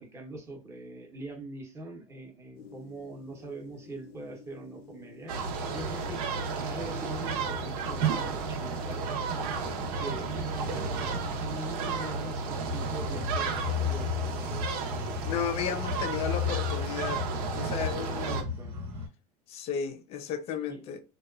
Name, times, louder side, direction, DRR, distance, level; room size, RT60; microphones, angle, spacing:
voice 1, 0.0-5.3 5.7-6.2 6.6-9.5 10.0-16.1 18.0-18.7 20.7-20.8, right 2 dB, 15° right, 0.7 m, -43 dB
sound 1, 2.5-14.5, left 6 dB, 85° left, 0.6 m, -51 dB
sound 2, 5.3-18.4, right 4 dB, 85° right, 0.7 m, -33 dB
sound 3, 12.6-19.1, left 7 dB, 50° right, 0.8 m, -34 dB
voice 2, 15.2-17.2 17.5-18.4 19.5-21.0, left 7 dB, 35° left, 0.4 m, -33 dB
2.8 x 2.2 x 2.3 m
supercardioid pair, 150°, 19 cm